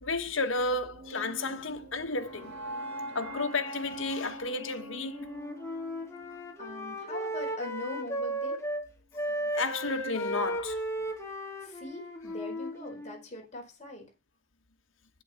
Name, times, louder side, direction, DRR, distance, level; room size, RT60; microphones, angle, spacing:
voice 1, 0.0-2.5 3.1-5.3 9.5-10.8, left 3 dB, 75° left, 1.5 m, -32 dB
sound 1, 0.9-7.0, right 1 dB, 60° right, 3.0 m, -43 dB
Wind instrument woodwind instrument, 5.1-8.9 9.1-13.3, equal, 15° left, 2.5 m, -35 dB
voice 2, 6.6-8.6 11.6-14.1, left 1 dB, 35° left, 4.5 m, -42 dB
8.5 x 8.4 x 5.8 m
head